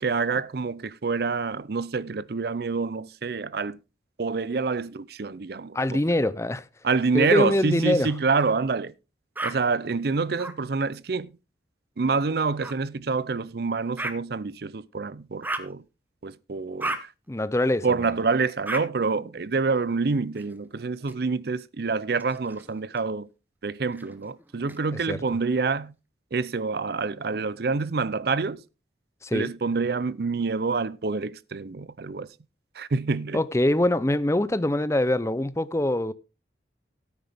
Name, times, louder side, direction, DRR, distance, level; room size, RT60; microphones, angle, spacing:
voice 1, 0.0-3.8 4.2-6.0 6.8-8.9 9.4-11.3 12.0-15.8 16.2-17.1 17.8-23.3 23.6-25.9 26.3-28.6 29.3-32.3 32.8-33.4, right 4 dB, 55° right, 0.5 m, -27 dB
voice 2, 5.7-6.6 7.1-8.1 17.3-17.9 24.9-25.2 29.2-29.5 33.3-36.1, left 1 dB, 15° left, 0.5 m, -24 dB
sound 1, 9.3-9.5 10.4-10.5 12.6-12.7 14.0-14.1 15.4-15.7 16.8-17.0 18.6-18.8 20.3-21.1 22.1-23.0 23.9-24.8, right 2 dB, 10° right, 0.9 m, -34 dB
13.0 x 9.7 x 3.5 m
head